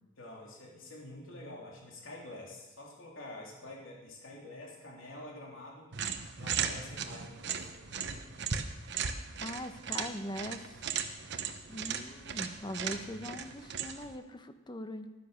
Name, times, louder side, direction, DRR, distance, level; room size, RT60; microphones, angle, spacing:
voice 1, 0.2-5.9 6.3-8.6 9.4-9.6, left 1 dB, 85° left, -2 dB, 3.3 m, -48 dB
sound 1, 5.9-14.2, right 7 dB, 60° right, 1.0 m, -37 dB
voice 2, 9.4-10.8 11.7-15.1, left 1 dB, 25° left, 9 dB, 0.9 m, -41 dB
12.5 x 10.0 x 6.8 m, 1.1 s
head